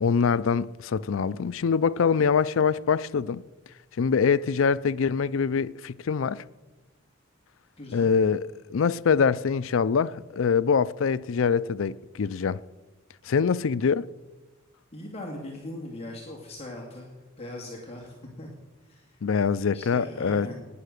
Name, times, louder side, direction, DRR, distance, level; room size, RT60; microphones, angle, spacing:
voice 1, 0.0-3.4 4.0-6.4 7.9-12.6 13.3-14.1 19.2-20.5, left 6 dB, 75° left, 0.4 m, -24 dB
voice 2, 7.8-8.1 14.9-17.1 17.4-18.5 18.8-19.2 19.7-20.5, left 1 dB, 30° left, 2.3 m, -40 dB
18.5 x 9.9 x 6.5 m
head